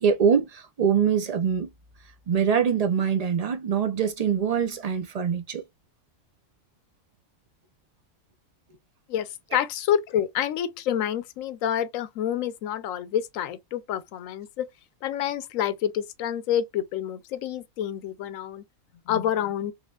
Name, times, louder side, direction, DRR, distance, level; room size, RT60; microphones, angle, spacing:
voice 1, 0.0-1.7 2.3-5.6, right 7 dB, 65° right, 0.4 m, -24 dB
voice 2, 9.1-14.7 15.0-18.6 19.1-19.7, left 10 dB, 75° left, 1.0 m, -28 dB
4.1 x 3.3 x 2.3 m
omnidirectional pair, 1.4 m